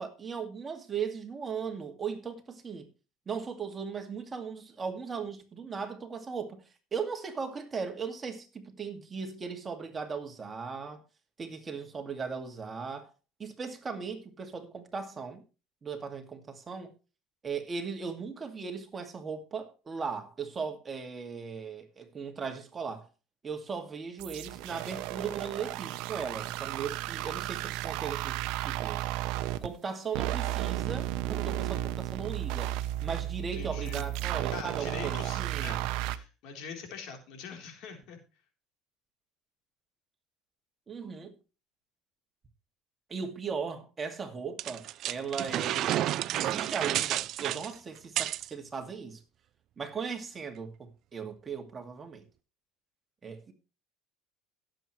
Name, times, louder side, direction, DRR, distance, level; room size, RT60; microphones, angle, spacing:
voice 1, 0.0-2.9 3.3-11.0 11.4-13.1 13.4-15.4 15.8-16.9 17.4-23.1 23.4-29.0 29.6-32.7 33.0-35.8 40.9-41.3 43.1-49.2 49.8-52.2 53.2-53.5, right 5 dB, 25° right, 2.2 m, -38 dB
sound 1, 24.2-29.7 30.1-36.2, right 14 dB, 75° right, 0.9 m, -33 dB
voice 2, 33.5-34.1 34.5-38.2, left 6 dB, 65° left, 3.7 m, -43 dB
sound 2, 44.6-48.5, right 13 dB, 55° right, 0.5 m, -31 dB
17.5 x 7.8 x 3.2 m
supercardioid pair, 110°, 0 cm